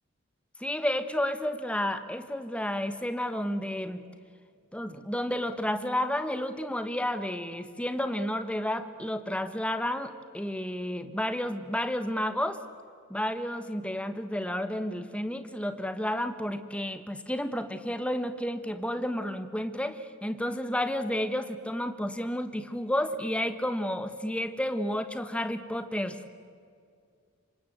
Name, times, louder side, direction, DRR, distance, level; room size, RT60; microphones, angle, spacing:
voice 1, 0.6-4.0 4.7-12.6 13.1-26.2, left 1 dB, 5° left, 9 dB, 1.3 m, -31 dB
27.0 x 25.0 x 8.0 m, 2.2 s
head